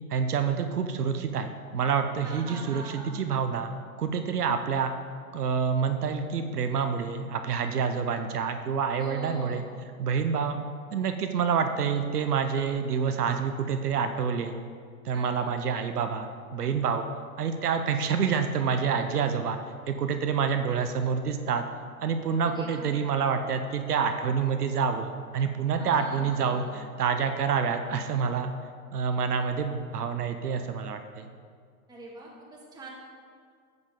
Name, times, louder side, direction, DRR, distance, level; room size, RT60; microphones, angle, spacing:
voice 1, 0.1-3.7 4.0-4.9 5.3-9.6 10.0-10.6 10.9-14.5 15.0-17.0 17.4-19.6 19.9-21.6 22.0-28.5 28.9-31.2, right 6 dB, 80° right, 7 dB, 0.8 m, -27 dB
voice 2, 2.2-3.2 9.0-9.7 15.1-15.5 22.4-23.0 25.7-26.8 31.9-32.9, right 2 dB, 10° right, -4 dB, 2.0 m, -43 dB
11.5 x 8.0 x 3.7 m, 2.1 s
hypercardioid pair, 120°, 45 cm